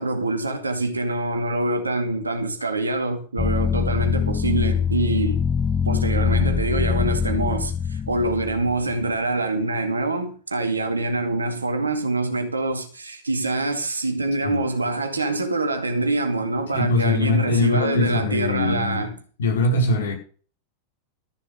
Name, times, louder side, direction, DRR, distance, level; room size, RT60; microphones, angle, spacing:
voice 1, 0.0-5.4 5.9-19.1, right 2 dB, 80° right, 2.1 m, -25 dB
sound 1, 3.4-9.1, left 6 dB, 15° left, 0.6 m, -23 dB
voice 2, 16.7-19.1 19.4-20.1, left 2 dB, 65° left, 5.0 m, -22 dB
13.5 x 6.7 x 6.5 m
figure-of-eight pair, 90°, 0 cm